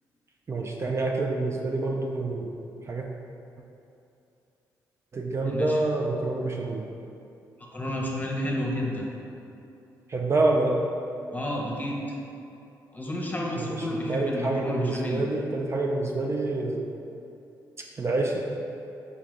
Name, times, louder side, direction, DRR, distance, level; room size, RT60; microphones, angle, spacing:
voice 1, 0.5-2.5 2.9-3.1 5.1-6.9 10.1-10.8 13.6-16.9 18.0-18.4, right 2 dB, 35° right, 0 dB, 0.4 m, -27 dB
voice 2, 5.5-5.8 7.6-9.1 11.3-12.0 12.9-15.2, left 1 dB, 20° left, -1 dB, 0.8 m, -31 dB
4.2 x 3.6 x 3.2 m, 2.7 s
supercardioid pair, 60°, 8 cm